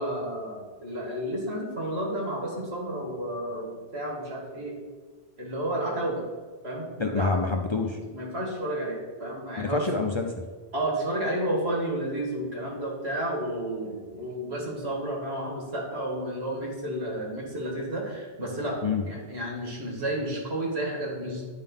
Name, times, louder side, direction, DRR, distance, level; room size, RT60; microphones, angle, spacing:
voice 1, 0.0-4.8 5.4-6.2 6.6-7.4 8.1-9.9 10.7-18.8 19.0-21.4, right 1 dB, 85° right, -2 dB, 2.3 m, -31 dB
voice 2, 7.0-8.0 9.6-10.4 18.8-19.0, left 4 dB, 35° left, 2 dB, 0.5 m, -27 dB
10.0 x 3.9 x 5.4 m, 1.4 s
omnidirectional pair, 1.1 m